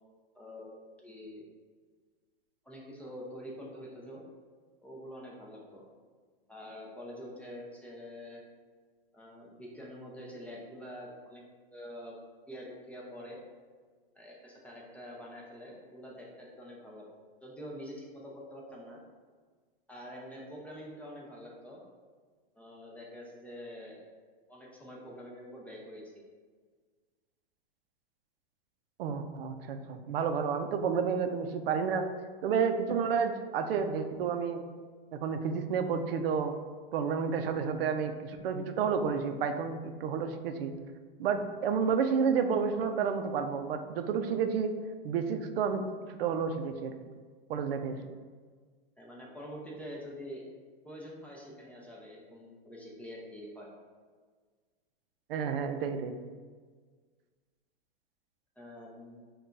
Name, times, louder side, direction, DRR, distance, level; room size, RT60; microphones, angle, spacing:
voice 1, 0.3-1.5 2.7-4.2 4.8-5.9 6.5-8.4 9.1-11.4 11.7-12.2 12.5-13.4 14.2-17.0 17.4-19.0 19.9-21.8 22.6-24.1 24.5-26.2 49.0-50.4 50.8-53.7 58.6-59.3, equal, 5° left, -3 dB, 0.4 m, -46 dB
voice 2, 29.0-32.1 32.4-34.6 35.1-36.5 36.9-40.7 41.2-44.7 45.0-46.9 47.5-48.0 55.3-56.1, right 6 dB, 70° right, 7 dB, 0.5 m, -30 dB
5.5 x 2.3 x 2.5 m, 1.5 s
hypercardioid pair, 125°, 30 cm